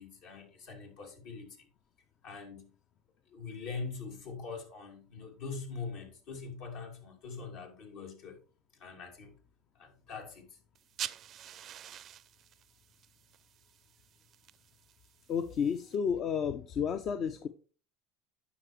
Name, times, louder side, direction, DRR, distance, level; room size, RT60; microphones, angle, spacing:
voice 1, 0.0-1.7 2.2-2.7 3.3-8.4 8.8-9.3 9.7-10.5, left 4 dB, 70° left, 2.5 m, -43 dB
sound 1, 10.7-15.9, right 11 dB, 45° right, 0.4 m, -47 dB
voice 2, 15.3-17.5, left 7 dB, 45° left, 0.6 m, -31 dB
9.7 x 5.9 x 3.2 m
hypercardioid pair, 90°, 0 cm